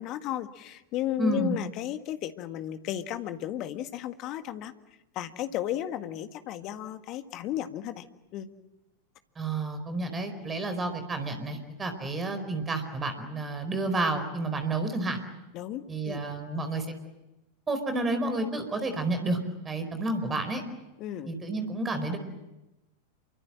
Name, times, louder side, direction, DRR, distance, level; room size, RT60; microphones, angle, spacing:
voice 1, 0.0-4.7 5.2-8.0 8.3-8.5 15.5-16.2 21.0-21.3, left 12 dB, 40° left, 9 dB, 1.7 m, -34 dB
voice 2, 1.2-1.6 9.4-15.2 15.9-16.9 17.7-19.4 19.6-20.6 21.3-22.2, right 2 dB, 15° right, 8 dB, 4.6 m, -30 dB
28.0 x 24.5 x 7.7 m, 0.99 s
figure-of-eight pair, 90°, 0 cm